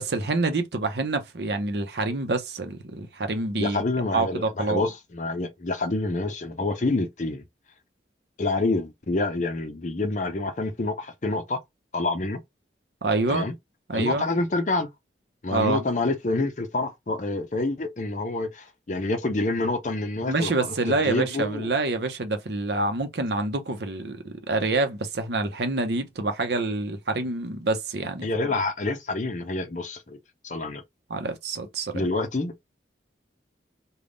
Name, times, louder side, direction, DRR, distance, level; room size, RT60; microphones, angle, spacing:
voice 1, 0.0-3.8 4.1-4.8 13.0-13.5 13.9-14.3 15.5-15.8 20.3-28.5 31.1-31.9, right 3 dB, 65° right, 0.7 m, -27 dB
voice 2, 3.6-7.4 8.4-11.6 11.9-12.4 13.3-13.5 13.9-14.9 15.4-21.7 28.2-30.2 30.4-30.8 31.9-32.5, left 2 dB, 40° left, 0.6 m, -27 dB
3.5 x 2.3 x 3.8 m
head